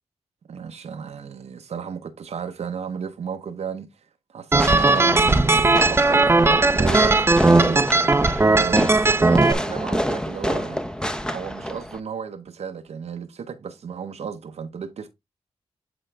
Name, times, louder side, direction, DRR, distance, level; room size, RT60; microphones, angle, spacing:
voice 1, 0.5-3.9 4.3-7.9 8.4-10.8 11.3-15.1, right 6 dB, 80° right, 0.7 m, -33 dB
sound 1, 4.5-9.5, right 3 dB, 25° right, 0.5 m, -17 dB
Fireworks, 4.6-12.0, equal, 5° left, 0.8 m, -28 dB
7.8 x 3.8 x 3.2 m
cardioid pair, 60°, 11 cm